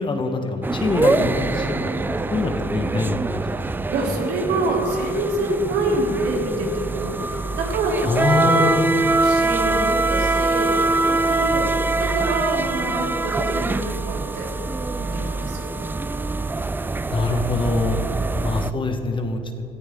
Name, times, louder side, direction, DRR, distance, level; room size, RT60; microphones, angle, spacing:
voice 1, 0.0-3.5 8.1-8.9 17.1-18.0 18.4-19.4, left 3 dB, 30° left, 5 dB, 1.3 m, -24 dB
sound 1, 0.6-18.7, right 3 dB, 10° right, 0.3 m, -24 dB
voice 2, 3.9-8.7 9.2-11.7 12.0-14.5 14.9-15.7, right 2 dB, 75° right, -2 dB, 3.3 m, -26 dB
17.0 x 14.5 x 3.7 m, 2.8 s
cardioid pair, 110°, 17 cm